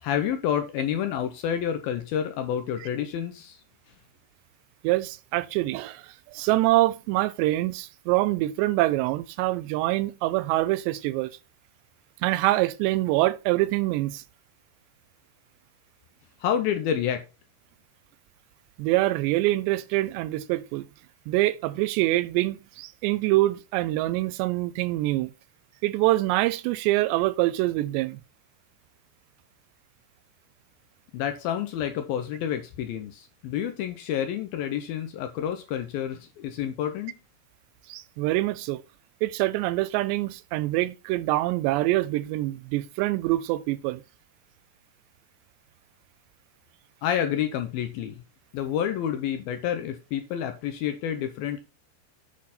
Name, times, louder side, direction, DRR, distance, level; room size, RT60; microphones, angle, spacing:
voice 1, 0.0-3.6 16.4-17.3 31.1-37.1 47.0-48.2 48.5-51.6, left 9 dB, 75° left, 2.3 m, -29 dB
voice 2, 4.8-11.3 12.2-14.2 18.8-20.9 21.3-25.3 25.8-28.2 37.9-38.8 39.2-44.0, right 17 dB, 85° right, 2.7 m, -25 dB
8.7 x 5.7 x 4.2 m
omnidirectional pair, 5.0 m